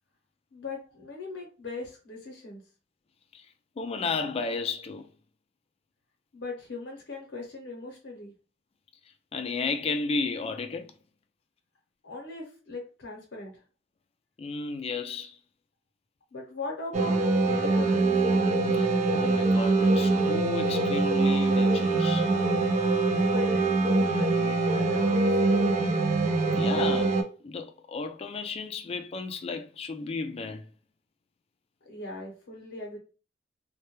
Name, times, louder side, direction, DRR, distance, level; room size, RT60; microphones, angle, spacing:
voice 1, 0.5-2.6 6.3-8.3 12.0-13.6 16.3-18.1 23.2-25.9 31.8-33.0, left 2 dB, 85° left, 0.7 m, -40 dB
voice 2, 3.8-5.1 9.3-10.9 14.4-15.4 18.7-22.4 26.6-30.6, left 4 dB, 35° left, 0.3 m, -33 dB
sound 1, 16.9-27.2, right 3 dB, 40° right, 0.4 m, -24 dB
2.2 x 2.1 x 2.9 m
head